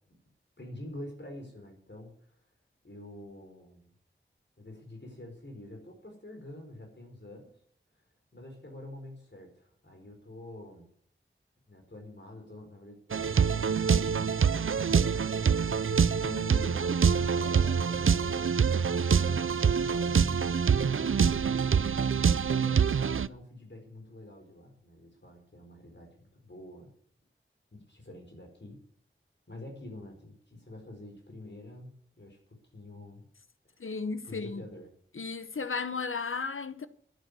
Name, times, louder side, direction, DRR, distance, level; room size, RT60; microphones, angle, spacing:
voice 1, 0.6-2.4 2.8-3.9 4.6-7.5 8.3-10.9 11.7-15.5 15.9-21.6 22.5-26.9 27.7-28.8 29.5-33.3 33.7-33.9 34.2-34.9, left 1 dB, 60° left, 4.4 m, -47 dB
sound 1, 13.1-23.3, right 6 dB, 80° right, 0.5 m, -25 dB
voice 2, 33.8-34.6 35.1-36.9, left 4 dB, 80° left, 0.9 m, -34 dB
11.5 x 10.0 x 8.3 m
wide cardioid pair, 45°, 21 cm